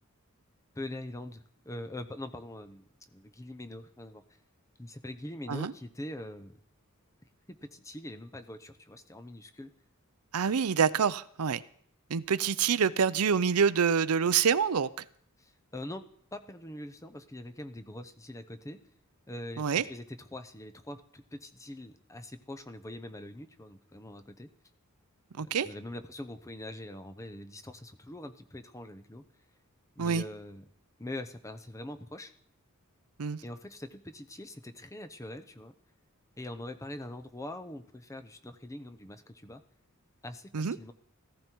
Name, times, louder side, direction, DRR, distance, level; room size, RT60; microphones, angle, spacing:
voice 1, 0.7-4.2 4.8-6.6 7.5-9.7 15.4-16.1 16.3-18.8 19.3-24.5 25.4-29.2 30.0-30.6 31.0-32.3 33.4-35.7 36.4-39.6 40.2-40.9, left 1 dB, 15° left, 10 dB, 0.8 m, -43 dB
voice 2, 10.3-11.6 12.1-14.9 19.6-19.8 25.4-25.7 30.0-30.2 33.2-33.4 40.5-40.8, right 6 dB, 80° right, 15 dB, 0.6 m, -26 dB
15.0 x 14.5 x 4.6 m, 0.62 s
head